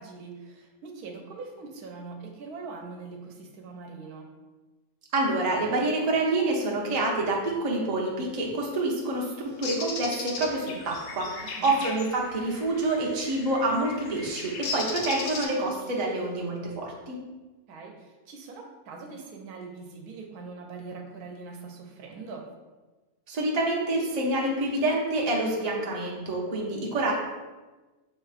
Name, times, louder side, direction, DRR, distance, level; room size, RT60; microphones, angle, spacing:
voice 1, 0.0-4.3 11.6-11.7 17.7-22.4, right 4 dB, 85° right, 2 dB, 1.2 m, -42 dB
voice 2, 5.1-17.2 23.3-27.1, right 2 dB, 35° right, -3 dB, 0.7 m, -27 dB
Bird, 9.6-10.5 13.1-13.3 14.6-15.8, left 3 dB, 90° left, 1.2 m, -33 dB
sound 1, 10.4-15.5, left 4 dB, 70° left, 1.0 m, -42 dB
7.0 x 2.9 x 2.4 m, 1.2 s
omnidirectional pair, 1.6 m